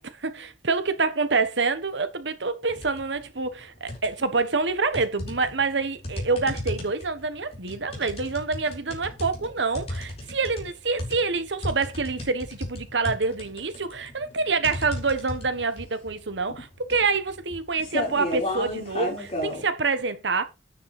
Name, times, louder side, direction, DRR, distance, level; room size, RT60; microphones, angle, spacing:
voice 1, 0.4-20.4, right 4 dB, 70° right, 1.3 m, -27 dB
sound 1, 2.7-3.1 3.5-4.4 4.9-19.6, left 1 dB, 35° left, 5.0 m, -34 dB
9.8 x 6.3 x 4.4 m
head